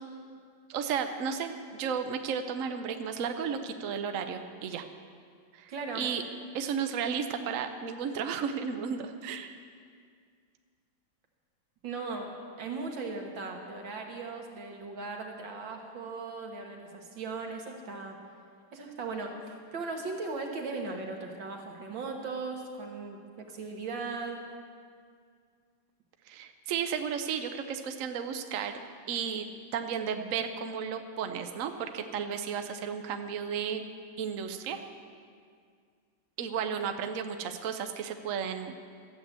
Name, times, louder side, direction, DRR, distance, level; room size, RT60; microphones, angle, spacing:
voice 1, 0.7-4.8 5.5-6.2 6.5-9.6 26.3-28.8 29.1-29.5 29.7-33.8 34.2-34.8 36.4-38.7, right 7 dB, 60° right, 6 dB, 0.9 m, -33 dB
voice 2, 5.7-6.1 11.8-18.2 18.7-24.4, right 3 dB, 75° right, 2 dB, 2.2 m, -38 dB
13.5 x 7.6 x 8.0 m, 2.1 s
omnidirectional pair, 2.1 m